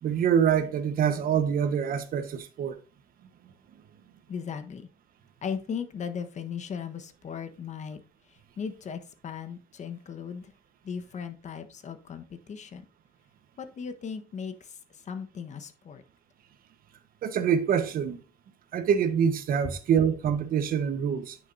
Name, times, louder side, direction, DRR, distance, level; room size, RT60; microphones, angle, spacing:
voice 1, 0.0-2.8 17.2-18.2 18.7-21.4, right 8 dB, 60° right, 1.3 m, -25 dB
voice 2, 4.3-4.9 5.4-8.0 8.3-10.5 10.8-12.8 13.6-16.0, left 6 dB, 45° left, 1.3 m, -37 dB
9.7 x 6.4 x 2.7 m
cardioid pair, 110°, 17 cm